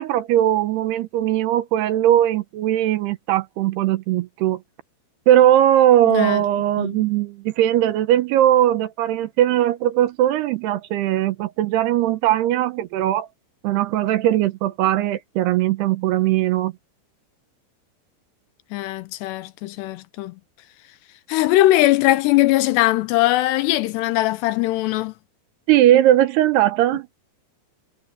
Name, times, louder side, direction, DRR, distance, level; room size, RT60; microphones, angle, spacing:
voice 1, 0.0-4.6 5.3-13.3 13.6-16.7 25.7-27.1, right 12 dB, 75° right, 2.8 m, -19 dB
voice 2, 6.0-6.4 6.8-7.0 18.7-20.4 21.3-25.1, left 16 dB, 80° left, 2.7 m, -20 dB
omnidirectional pair, 5.1 m